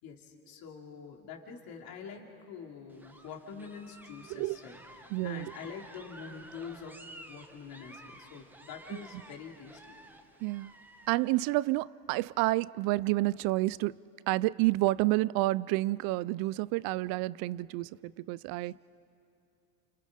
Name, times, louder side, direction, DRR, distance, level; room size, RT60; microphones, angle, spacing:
voice 1, 0.0-7.0 7.3-9.9, left 6 dB, 55° left, 3.0 m, -46 dB
sound 1, 2.9-11.5, right 1 dB, 5° right, 1.1 m, -53 dB
voice 2, 5.1-5.5 8.9-9.0 10.4-10.7 11.1-14.0 14.3-18.7, right 19 dB, 60° right, 0.5 m, -29 dB
29.5 x 29.5 x 5.1 m
cardioid pair, 150°, 42 cm